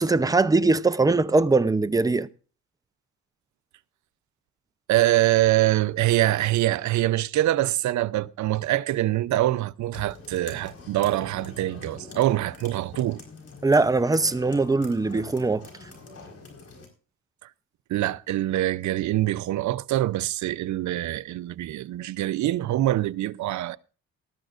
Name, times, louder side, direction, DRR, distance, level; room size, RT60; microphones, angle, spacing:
voice 1, 0.0-2.3 13.6-15.7, right 3 dB, 10° right, 0.6 m, -21 dB
voice 2, 4.9-13.2 17.9-23.8, right 15 dB, 70° right, 0.6 m, -24 dB
sound 1, 9.9-16.9, left 3 dB, 50° left, 4.5 m, -45 dB
18.5 x 13.0 x 2.5 m
cardioid pair, 90°, 30 cm